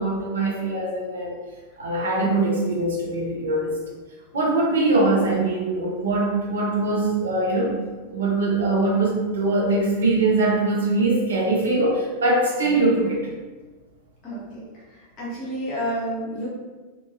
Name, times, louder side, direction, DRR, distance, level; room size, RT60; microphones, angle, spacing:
voice 1, 0.0-1.3 1.8-3.8 4.3-7.7 8.1-13.2, right 2 dB, 70° right, -3 dB, 0.7 m, -22 dB
voice 2, 14.2-16.5, equal, 30° left, -6 dB, 1.2 m, -30 dB
2.9 x 2.5 x 2.6 m, 1.3 s
figure-of-eight pair, 90°, 0 cm